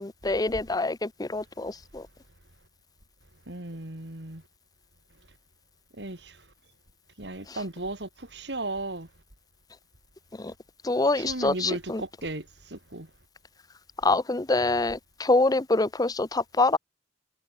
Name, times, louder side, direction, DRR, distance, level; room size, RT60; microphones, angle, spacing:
voice 1, 0.0-2.1 7.5-7.6 10.3-10.5 10.8-12.0 14.0-16.8, left 2 dB, 20° left, 0.7 m, -25 dB
voice 2, 3.5-4.4 6.0-6.4 7.2-9.1 11.2-13.1, right 2 dB, 75° right, 3.4 m, -35 dB
head